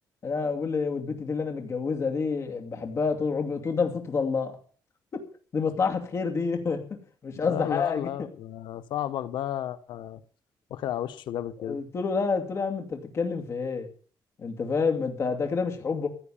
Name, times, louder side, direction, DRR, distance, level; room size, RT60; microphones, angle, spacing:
voice 1, 0.2-4.6 5.1-5.2 5.5-8.1 11.6-13.9 14.4-16.1, left 5 dB, 35° left, 2.6 m, -28 dB
voice 2, 7.4-10.2 10.7-11.8, left 11 dB, 90° left, 1.2 m, -33 dB
15.5 x 9.9 x 7.2 m
cardioid pair, 175°, 8 cm